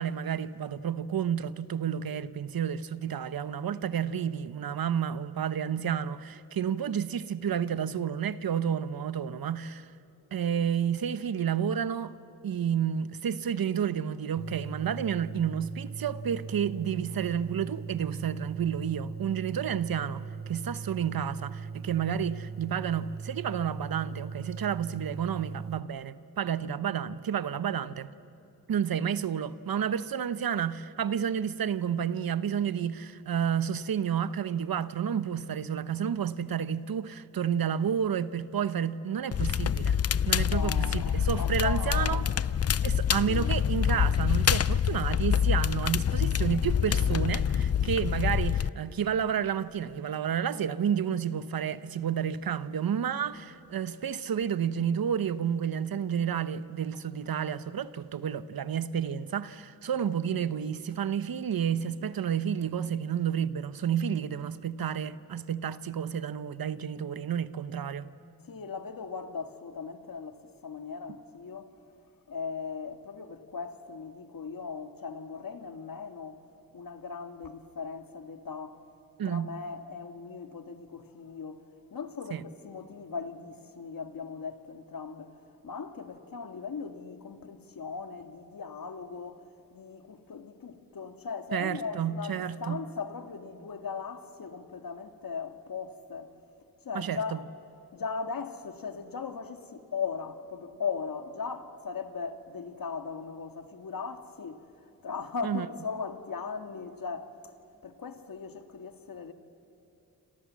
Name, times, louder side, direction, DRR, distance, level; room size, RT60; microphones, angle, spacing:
voice 1, 0.0-9.9 10.3-12.1 12.4-28.1 28.7-40.0 40.3-42.2 42.8-68.1 79.2-79.5 82.3-82.4 91.5-92.8 96.9-97.4 105.4-105.7, right 8 dB, 75° right, 0.9 m, -30 dB
sound 1, 14.4-25.8, right 6 dB, 30° right, 0.6 m, -40 dB
Crackle, 39.3-48.7, left 8 dB, 45° left, 0.5 m, -26 dB
voice 2, 40.5-42.2 43.2-43.6 68.4-71.7 72.3-76.4 76.7-78.8 79.2-81.6 81.9-85.4 85.6-89.4 89.7-96.3 96.8-97.4 97.9-104.6 105.0-107.5 107.8-109.3, left 5 dB, 70° left, 1.9 m, -38 dB
28.0 x 27.5 x 7.4 m
cardioid pair, 75°, 36 cm